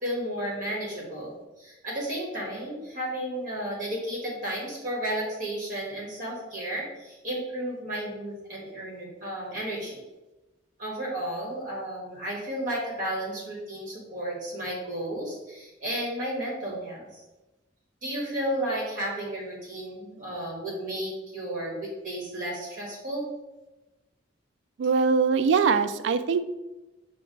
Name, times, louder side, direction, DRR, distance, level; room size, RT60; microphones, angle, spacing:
voice 1, 0.0-10.0 10.8-17.2 18.0-23.3, right 1 dB, 45° right, -4 dB, 1.6 m, -33 dB
voice 2, 24.8-26.4, right 5 dB, 70° right, 12 dB, 0.3 m, -22 dB
6.0 x 2.3 x 3.8 m, 1.0 s
head